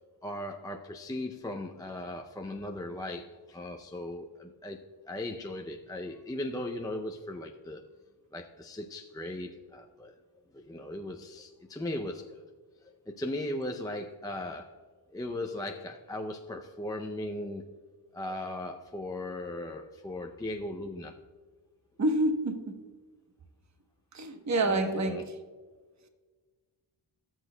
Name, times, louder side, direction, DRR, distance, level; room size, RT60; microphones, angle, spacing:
voice 1, 0.2-4.8 5.1-7.8 8.3-10.2 10.5-12.4 13.1-14.8 15.1-17.7 18.1-21.1 24.6-25.3, left 1 dB, 10° left, 0.4 m, -38 dB
voice 2, 22.0-22.8 24.1-25.2, right 2 dB, 35° right, 1.0 m, -28 dB
18.0 x 6.3 x 2.2 m
cardioid pair, 85°, 46 cm